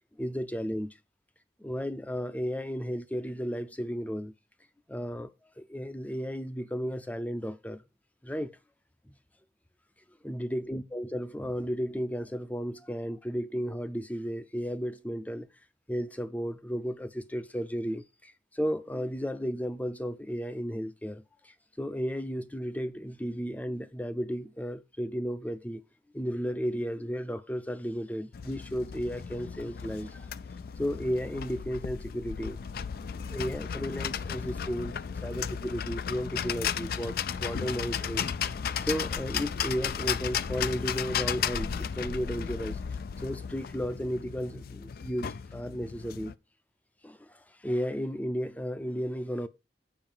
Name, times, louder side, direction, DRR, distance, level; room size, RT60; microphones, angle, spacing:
voice 1, 0.2-0.9 1.6-4.3 4.9-5.3 5.6-7.8 8.2-8.5 10.2-15.5 15.9-25.8 26.1-30.3 30.8-32.6 33.1-34.9 35.2-38.3 38.8-42.8 43.2-46.3 47.0-49.5, equal, 10° left, 0.6 m, -34 dB
sound 1, 28.3-46.3, left 7 dB, 55° left, 0.4 m, -34 dB
7.0 x 5.7 x 5.6 m
head